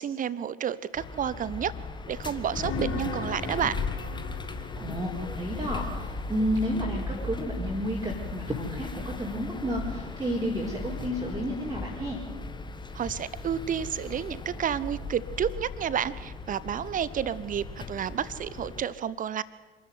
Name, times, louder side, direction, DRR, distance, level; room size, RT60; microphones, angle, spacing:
voice 1, 0.0-1.7 2.1-3.8 12.9-19.4, right 9 dB, 25° right, 18 dB, 1.0 m, -30 dB
sound 1, 0.9-18.8, left 3 dB, 15° left, 1.7 m, -37 dB
sound 2, 2.5-6.3 10.8-11.0, left 3 dB, 40° left, 3.3 m, -38 dB
voice 2, 4.8-12.2, equal, 10° right, -3 dB, 4.7 m, -31 dB
27.0 x 13.5 x 9.7 m, 1.3 s
figure-of-eight pair, 70°, 30 cm